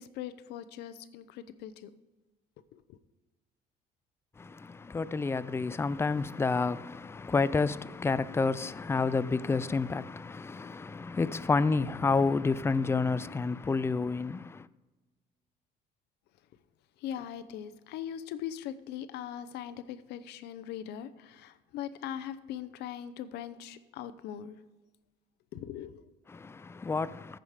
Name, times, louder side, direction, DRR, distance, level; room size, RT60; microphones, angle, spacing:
voice 1, 0.0-1.9 2.7-3.0 17.0-24.6 25.5-26.0, left 10 dB, 85° left, 0.7 m, -40 dB
voice 2, 4.9-14.4 26.8-27.1, left 4 dB, 15° left, 0.4 m, -29 dB
14.5 x 5.1 x 4.9 m
cardioid pair, 110°, 17 cm